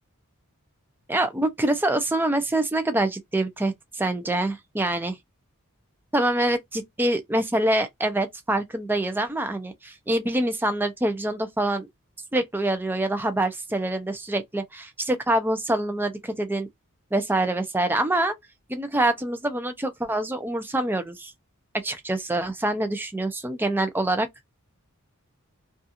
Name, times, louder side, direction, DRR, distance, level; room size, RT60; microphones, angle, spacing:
voice 1, 1.1-5.2 6.1-11.9 12.3-16.7 17.1-18.3 18.7-21.3 21.8-24.3, right 1 dB, 10° right, 0.4 m, -25 dB
2.4 x 2.3 x 2.7 m
head